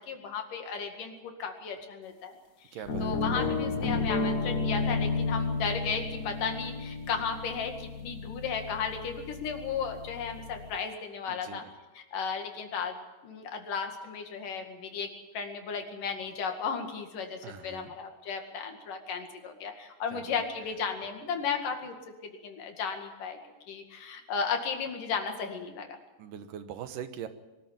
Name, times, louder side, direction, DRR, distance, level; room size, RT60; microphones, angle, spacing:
voice 1, 0.1-2.4 3.0-11.7 12.0-15.1 15.3-21.9 22.2-23.4 23.7-25.9, left 6 dB, 85° left, 4 dB, 3.8 m, -34 dB
voice 2, 2.7-3.5 11.3-11.7 17.4-17.9 20.1-20.4 26.2-27.3, right 9 dB, 90° right, 10 dB, 2.8 m, -42 dB
sound 1, 2.9-10.8, left 3 dB, 50° left, 1.1 m, -32 dB
23.0 x 13.0 x 8.9 m, 1.1 s
omnidirectional pair, 3.7 m